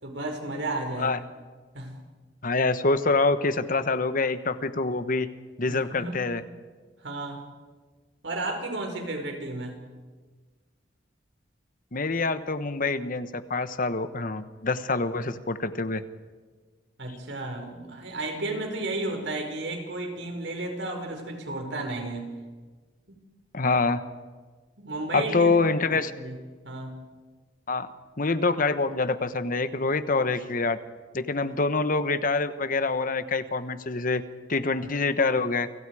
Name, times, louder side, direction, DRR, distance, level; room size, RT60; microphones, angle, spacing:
voice 1, 0.0-1.1 1.7-2.0 5.7-6.2 7.0-7.4 8.2-9.8 17.0-22.3 23.1-23.2 24.8-26.4 26.6-27.0, right 2 dB, 80° right, 3 dB, 5.3 m, -33 dB
voice 2, 2.4-5.3 5.6-6.4 11.9-16.0 23.5-24.0 25.1-26.1 27.7-27.9 28.2-30.8 31.1-34.2 34.5-35.7, left 3 dB, 50° left, 12 dB, 1.2 m, -25 dB
29.0 x 25.0 x 4.9 m, 1.4 s
head